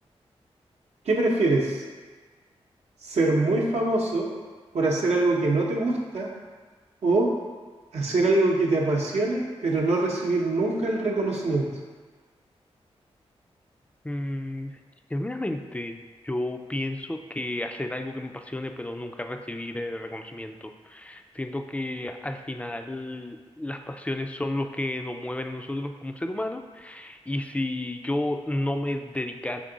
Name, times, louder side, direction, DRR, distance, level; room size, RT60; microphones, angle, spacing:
voice 1, 1.1-1.8 3.0-4.3 4.7-6.3 7.0-7.3 7.9-11.7, right 2 dB, 75° right, -2 dB, 0.7 m, -23 dB
voice 2, 14.0-14.8 15.1-29.6, left 1 dB, 10° left, 6 dB, 0.3 m, -32 dB
3.6 x 3.5 x 3.8 m, 1.4 s
cardioid pair, 55°, 11 cm